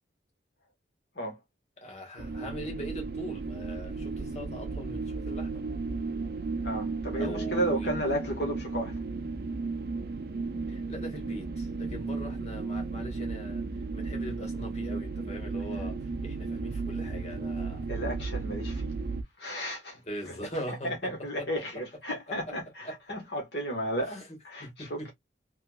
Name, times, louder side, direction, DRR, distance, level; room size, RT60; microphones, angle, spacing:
voice 1, 1.8-5.6 7.2-7.9 10.7-17.9 20.1-21.5 22.8-23.0 24.1-24.2 24.6-25.1, equal, 35° left, 1.5 m, -41 dB
sound 1, 2.2-19.2, right 3 dB, 55° right, 0.5 m, -34 dB
voice 2, 6.6-9.0 17.9-18.9 19.4-20.3 20.7-25.1, equal, 60° left, 1.2 m, -33 dB
3.3 x 3.0 x 2.2 m
head